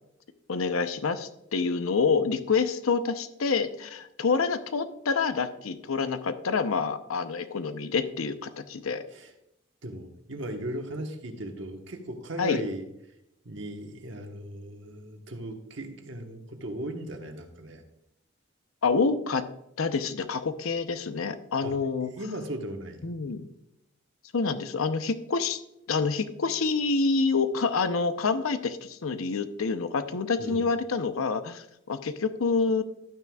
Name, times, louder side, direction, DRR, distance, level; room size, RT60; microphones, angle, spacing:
voice 1, 0.5-9.0 12.4-12.6 18.8-19.5 19.8-22.1 23.0-23.5 24.3-25.6 25.9-32.8, left 4 dB, 85° left, 10 dB, 0.7 m, -27 dB
voice 2, 9.8-12.8 13.4-17.8 21.6-23.1 30.4-30.6, right 1 dB, 60° right, 4 dB, 1.2 m, -37 dB
12.0 x 9.4 x 2.3 m, 0.83 s
head